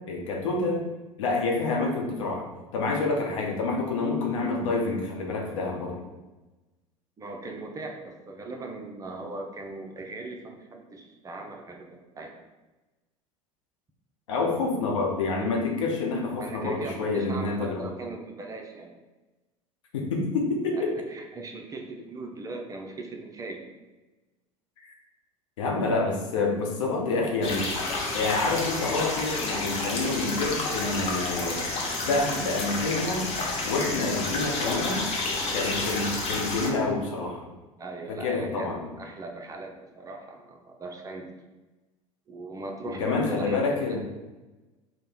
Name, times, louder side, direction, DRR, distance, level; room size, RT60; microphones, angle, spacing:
voice 1, 0.1-0.8 1.2-2.4 2.7-6.0 14.3-17.9 19.9-20.9 25.6-27.7 28.1-31.6 32.0-33.3 33.6-35.1 35.5-37.5 38.1-38.9 42.8-44.0, left 3 dB, 65° left, 0 dB, 0.8 m, -27 dB
voice 2, 7.2-12.3 16.4-18.9 20.7-23.6 37.8-41.3 42.3-44.0, right 3 dB, 20° right, 2 dB, 0.5 m, -39 dB
sound 1, 27.4-36.7, left 3 dB, 35° left, 0.8 m, -30 dB
3.3 x 2.1 x 4.2 m, 1.1 s
figure-of-eight pair, 70°, 17 cm